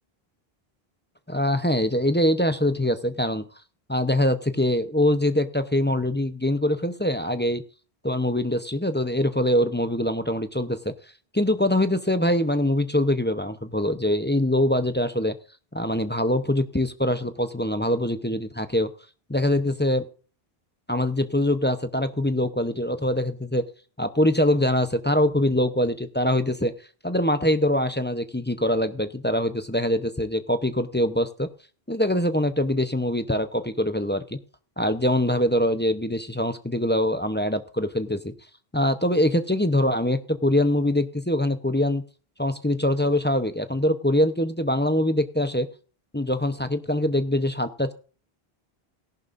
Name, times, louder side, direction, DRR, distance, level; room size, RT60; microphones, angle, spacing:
voice 1, 1.3-3.4 3.9-7.6 8.0-10.9 11.3-15.3 15.7-18.9 19.3-20.1 20.9-23.6 24.0-26.7 27.0-31.5 31.9-34.4 34.8-38.3 38.7-42.0 42.4-45.7 46.1-47.9, left 1 dB, 10° left, 9 dB, 0.6 m, -23 dB
17.5 x 11.0 x 2.6 m, 0.39 s
omnidirectional pair, 1.1 m